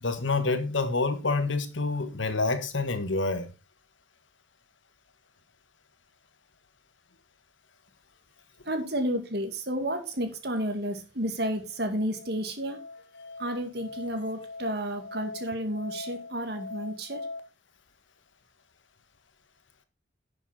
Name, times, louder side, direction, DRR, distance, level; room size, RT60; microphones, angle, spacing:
voice 1, 0.0-3.5, left 3 dB, 80° left, 1.5 m, -27 dB
voice 2, 8.7-12.8 13.4-17.3, equal, 55° right, 2.1 m, -31 dB
Musical instrument, 11.7-17.4, left 3 dB, 65° left, 0.9 m, -42 dB
11.0 x 7.0 x 4.2 m
head